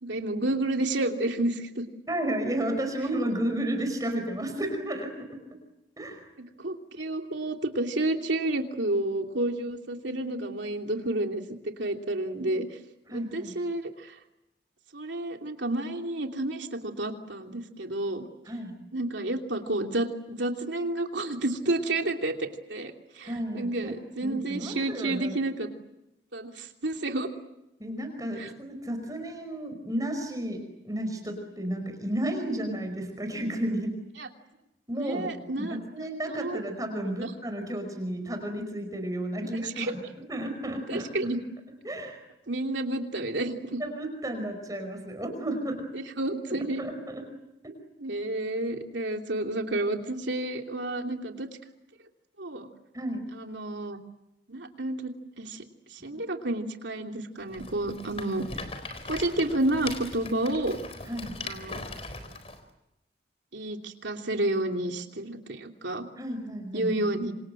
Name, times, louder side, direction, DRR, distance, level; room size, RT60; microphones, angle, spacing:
voice 1, 0.0-1.8 6.6-12.7 13.1-14.1 14.9-18.2 18.9-25.7 26.3-27.3 28.4-28.5 34.2-34.3 35.0-35.8 36.3-36.6 37.2-37.3 39.6-39.9 40.9-41.4 42.5-43.8 45.9-46.8 48.0-51.5 52.4-52.7 53.3-54.0 54.5-55.6 55.9-58.4 59.1-60.8 61.4-61.9 63.5-66.1 66.7-67.3, right 2 dB, 80° right, 3 dB, 2.9 m, -30 dB
voice 2, 2.1-5.6 6.0-6.2 13.1-13.5 18.5-18.7 23.2-25.4 27.8-34.0 34.9-35.3 35.6-40.0 40.3-41.1 41.8-42.2 43.8-45.9 46.8-47.3 52.9-53.3 56.1-56.2 61.1-61.5 66.2-66.9, right 1 dB, 20° right, 6 dB, 5.2 m, -32 dB
Rattle, 57.5-62.6, left 3 dB, 35° left, 4.1 m, -40 dB
27.5 x 27.0 x 7.9 m, 0.88 s
head